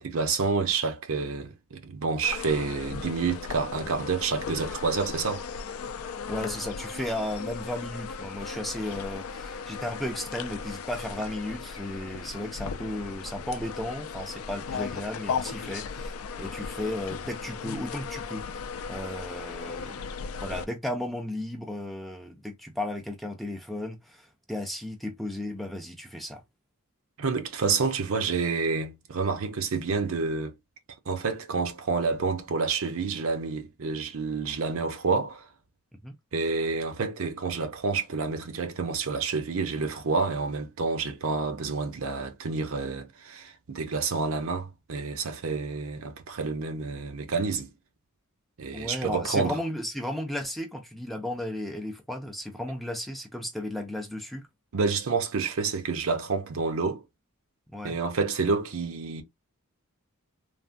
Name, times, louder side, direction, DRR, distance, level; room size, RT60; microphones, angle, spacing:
voice 1, 0.0-5.5 27.2-30.5 31.1-35.5 36.3-47.7 48.6-49.6 54.7-57.0 57.8-59.2, right 4 dB, 65° right, 0.6 m, -29 dB
sound 1, 2.2-20.6, left 5 dB, 70° left, 0.4 m, -37 dB
voice 2, 6.3-16.1 16.4-20.0 20.4-26.4 36.0-36.2 48.7-54.5 57.7-58.0, left 1 dB, ahead, 0.4 m, -34 dB
3.3 x 2.1 x 2.5 m
head